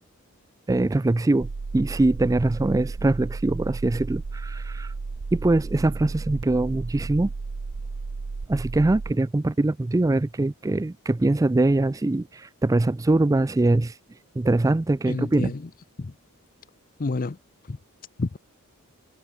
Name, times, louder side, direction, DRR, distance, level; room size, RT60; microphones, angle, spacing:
voice 1, 0.7-4.9 5.3-7.3 8.5-14.0 14.4-15.5, right 2 dB, 15° right, 0.3 m, -23 dB
sound 1, 1.4-9.1, right 4 dB, 85° right, 0.7 m, -33 dB
voice 2, 15.1-15.7 16.0-16.1 17.0-17.4 17.6-17.8 18.2-18.4, left 3 dB, 40° left, 0.6 m, -29 dB
head